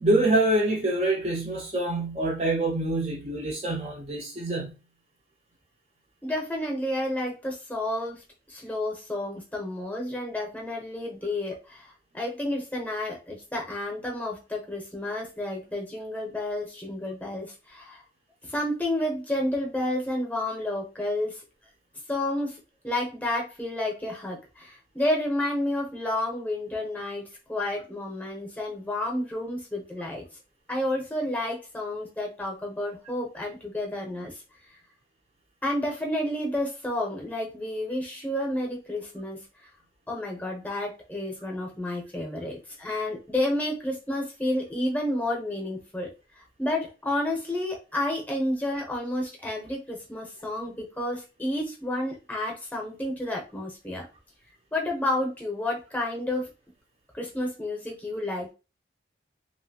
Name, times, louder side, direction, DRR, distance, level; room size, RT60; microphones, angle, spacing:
voice 1, 0.0-4.8, right 1 dB, 35° right, 0.6 m, -25 dB
voice 2, 6.2-18.0 18.4-21.4 22.1-30.2 30.7-34.4 35.6-39.4 40.1-46.1 46.4-54.1 54.7-56.5 57.1-58.5, left 1 dB, 10° left, 0.7 m, -30 dB
2.9 x 2.6 x 2.8 m
head